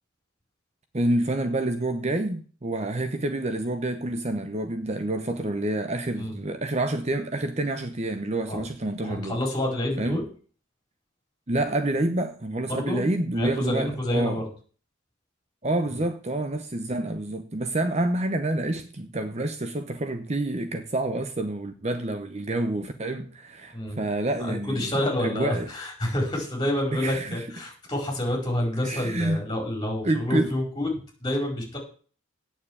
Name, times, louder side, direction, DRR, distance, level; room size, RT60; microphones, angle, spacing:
voice 1, 0.9-9.4 10.0-10.2 11.5-14.4 15.6-25.7 26.9-27.4 28.8-29.4 30.0-30.5, right 1 dB, 35° right, 0.9 m, -28 dB
voice 2, 9.0-10.2 12.7-14.5 15.9-16.0 23.7-24.0 24.7-31.8, left 1 dB, 20° left, 4.8 m, -28 dB
9.2 x 7.2 x 8.8 m
head